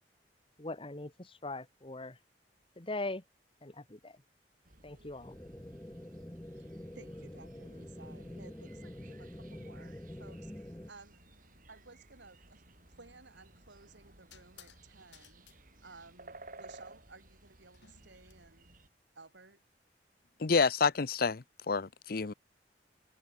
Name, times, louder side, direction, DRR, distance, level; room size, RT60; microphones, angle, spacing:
voice 1, 0.6-2.2 2.8-3.2 3.6-4.2 4.8-5.3, left 2 dB, 30° left, 1.7 m, -41 dB
sound 1, 4.6-18.9, right 2 dB, 50° right, 6.7 m, -57 dB
sound 2, 5.2-10.9, left 1 dB, 10° left, 0.8 m, -46 dB
voice 2, 6.9-11.2 11.7-12.6 13.0-15.4 15.8-18.8 19.1-19.6, right 3 dB, 85° right, 3.3 m, -57 dB
sound 3, 13.0-13.2 14.3-14.8 15.1-15.6 17.7-18.3, left 9 dB, 80° left, 3.9 m, -59 dB
voice 3, 20.4-22.3, left 4 dB, 55° left, 0.7 m, -29 dB
head